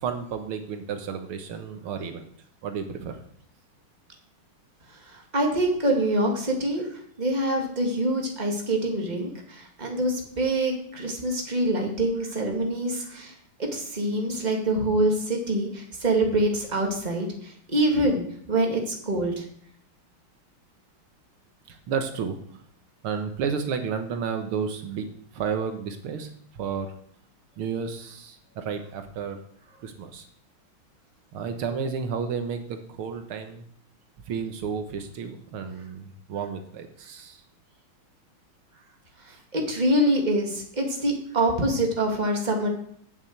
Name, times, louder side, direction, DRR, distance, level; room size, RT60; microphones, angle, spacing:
voice 1, 0.0-2.2 2.6-3.2 21.7-22.6 23.0-25.1 25.3-26.9 27.6-29.4 29.8-30.3 31.3-33.6 34.3-37.4, right 6 dB, 80° right, 7 dB, 2.0 m, -32 dB
voice 2, 4.9-13.3 13.6-19.5 39.2-42.7, right 1 dB, 20° right, 2 dB, 2.2 m, -25 dB
8.9 x 7.4 x 8.0 m, 0.64 s
omnidirectional pair, 2.3 m